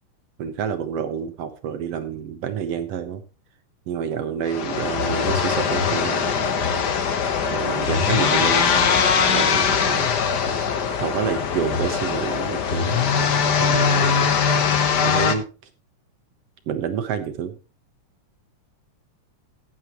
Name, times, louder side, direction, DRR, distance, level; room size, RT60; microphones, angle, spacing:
voice 1, 0.4-3.2 3.9-6.6 7.5-10.6 11.0-14.4 15.0-15.5 16.7-17.5, right 8 dB, 65° right, 9 dB, 1.6 m, -29 dB
sound 1, 4.5-15.3, left 6 dB, 75° left, 0.9 m, -21 dB
15.0 x 9.6 x 3.0 m, 0.32 s
omnidirectional pair, 3.6 m